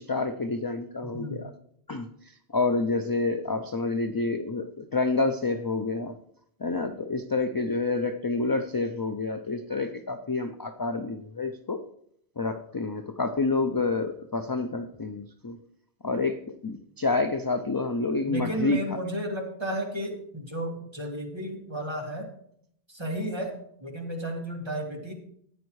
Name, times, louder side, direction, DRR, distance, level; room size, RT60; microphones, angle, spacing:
voice 1, 0.0-1.5 1.9-6.2 6.6-11.8 12.4-15.6 16.0-18.8, left 3 dB, 35° left, 8 dB, 0.3 m, -28 dB
voice 2, 18.3-22.3 22.9-25.1, right 1 dB, 25° right, 0 dB, 2.0 m, -33 dB
14.0 x 9.3 x 3.1 m, 0.69 s
omnidirectional pair, 1.1 m